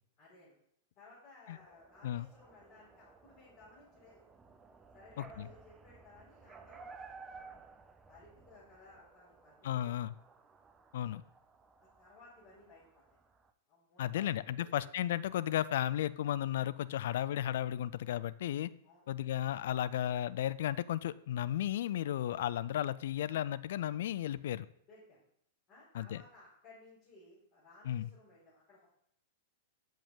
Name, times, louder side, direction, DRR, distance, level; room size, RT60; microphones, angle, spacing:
voice 1, 0.2-0.5 1.0-4.2 4.9-6.9 7.3-7.6 8.1-9.9 10.1-10.3 12.0-13.0 13.7-14.8 18.8-19.1 24.9-25.2 25.7-28.9, left 2 dB, 35° left, -8 dB, 3.8 m, -59 dB
sound 1, 1.6-13.5, right 4 dB, 15° right, 0.5 m, -56 dB
voice 2, 5.2-5.5 9.6-10.1 10.9-11.2 14.0-18.7 19.1-24.7 25.9-26.2 27.9-28.1, left 11 dB, 55° left, 16 dB, 0.3 m, -34 dB
7.8 x 6.6 x 3.9 m, 0.70 s
figure-of-eight pair, 100°, 0 cm